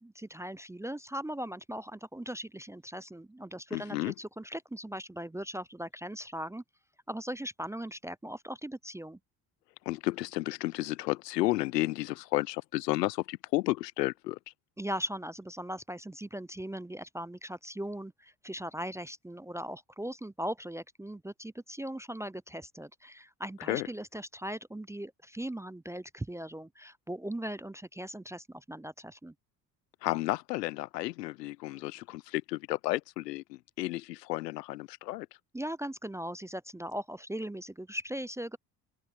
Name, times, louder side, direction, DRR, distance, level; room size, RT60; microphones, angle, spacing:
voice 1, 0.0-6.6 7.1-9.2 14.8-29.3 35.5-38.6, equal, 5° right, 0.6 m, -39 dB
voice 2, 3.7-4.1 9.9-14.4 23.7-23.9 30.0-35.3, left 18 dB, 80° left, 0.9 m, -32 dB
hypercardioid pair, 50°, 48 cm